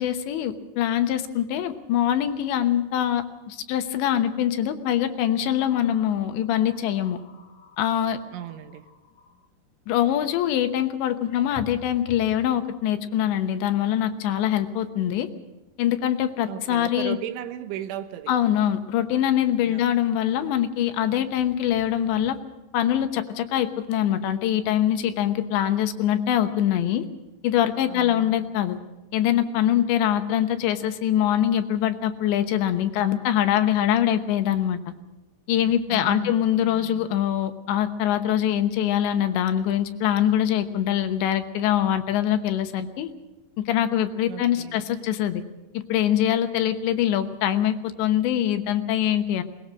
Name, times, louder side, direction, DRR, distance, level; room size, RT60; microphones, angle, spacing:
voice 1, 0.0-7.2 7.8-8.2 9.9-15.3 15.8-17.2 18.3-22.4 22.7-27.0 27.4-28.8 29.1-34.8 35.5-43.1 43.6-45.4 45.7-49.4, left 11 dB, 80° left, 9 dB, 3.3 m, -23 dB
sound 1, 1.7-1.8 2.2-2.4 4.2-4.4 5.2-9.5 10.7-10.8 11.3-12.4, left 4 dB, 60° left, 1.8 m, -48 dB
voice 2, 8.3-8.9 16.5-18.3 19.7-19.9 27.9-28.5 35.6-37.1 44.3-44.8 46.6-46.7, right 11 dB, 90° right, 10 dB, 3.5 m, -37 dB
21.0 x 20.0 x 6.3 m, 1.1 s
omnidirectional pair, 5.3 m